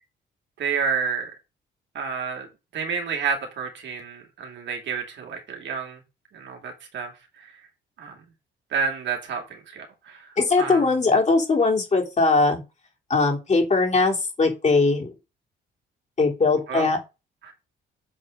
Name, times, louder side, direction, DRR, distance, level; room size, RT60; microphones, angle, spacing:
voice 1, 0.6-1.3 1.9-2.5 2.7-6.0 6.3-7.1 7.4-7.5 8.0-8.1 8.7-10.3 10.6-10.8 16.7-16.9 17.4-17.5, right 6 dB, 65° right, 3 dB, 2.7 m, -29 dB
voice 2, 10.4-12.6 13.1-15.1 16.2-17.0, left 3 dB, 35° left, 0 dB, 3.4 m, -20 dB
7.7 x 4.5 x 5.2 m, 0.27 s
cardioid pair, 90°, 20 cm